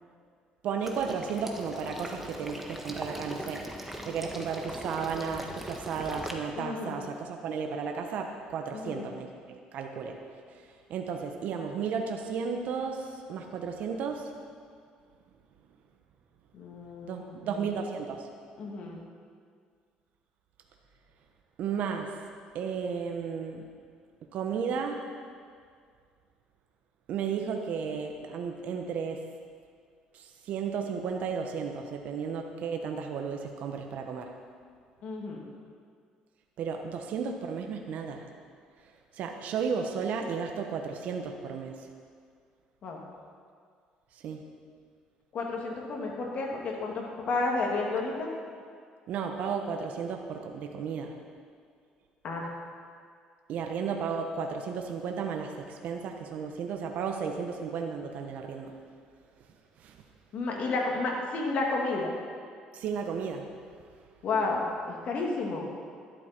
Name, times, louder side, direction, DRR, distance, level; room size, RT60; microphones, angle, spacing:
voice 1, 0.6-10.2 10.5-10.6 10.9-14.3 17.0-18.3 21.6-22.1 22.5-23.6 24.3-25.1 27.1-29.2 30.1-34.3 36.6-38.2 39.1-41.7 44.2-44.4 49.1-51.1 53.5-58.7 59.8-60.0 62.7-63.5, right 6 dB, 65° right, 3 dB, 1.1 m, -34 dB
Water / Liquid, 0.8-6.3, right 1 dB, 5° right, 1.5 m, -40 dB
voice 2, 6.5-7.0 8.7-9.1 16.5-17.5 18.6-19.0 35.0-35.5 42.8-43.0 45.3-48.3 52.2-52.5 60.3-62.1 64.2-65.7, left 3 dB, 55° left, -1 dB, 2.6 m, -31 dB
12.0 x 11.5 x 4.5 m, 2.1 s
cardioid pair, 100°, 3 cm